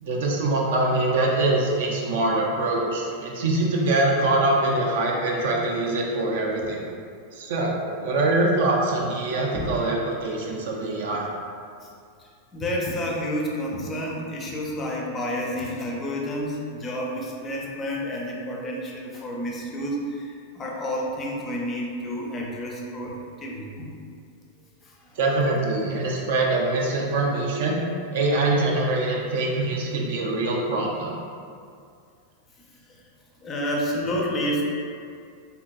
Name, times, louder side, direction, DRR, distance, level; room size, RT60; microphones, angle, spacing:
voice 1, 0.0-6.8 7.3-11.3 25.2-27.8 28.1-31.2, right 2 dB, 55° right, -1 dB, 0.3 m, -24 dB
voice 2, 12.2-23.9 24.8-25.2 32.9-33.0 33.4-34.6, equal, 25° left, -2 dB, 0.4 m, -30 dB
2.6 x 2.2 x 2.4 m, 2.3 s
figure-of-eight pair, 90°, 0 cm